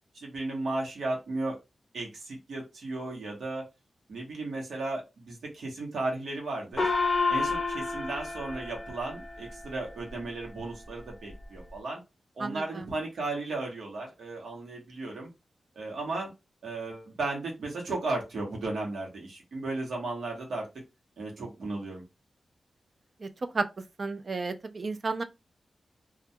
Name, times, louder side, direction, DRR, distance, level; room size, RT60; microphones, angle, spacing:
voice 1, 0.1-1.6 1.9-3.6 4.1-6.9 7.3-12.0 12.4-15.3 15.8-16.3 16.6-20.7 21.2-22.0, right 2 dB, 90° right, 0.9 m, -35 dB
Gong, 6.8-9.7, left 3 dB, 40° left, 0.5 m, -30 dB
voice 2, 12.4-12.9 23.2-23.3 23.5-23.7 24.0-25.2, right 3 dB, 45° right, 0.3 m, -32 dB
2.2 x 2.2 x 2.7 m
wide cardioid pair, 105°, 0 cm